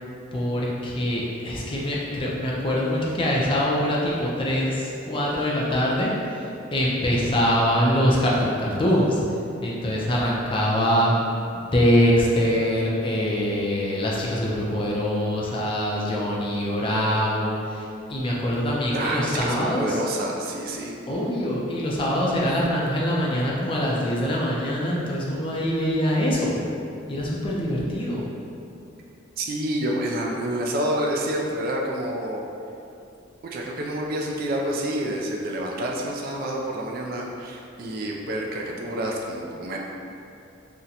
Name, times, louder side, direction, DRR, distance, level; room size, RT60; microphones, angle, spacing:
voice 1, 0.3-9.2 9.6-11.1 11.5-20.0 21.1-26.6 27.1-28.3, equal, 25° left, -4 dB, 0.4 m, -24 dB
voice 2, 18.9-20.9 29.4-32.4 33.4-39.8, right 1 dB, 50° right, -1 dB, 0.3 m, -28 dB
2.8 x 2.1 x 3.8 m, 2.7 s
head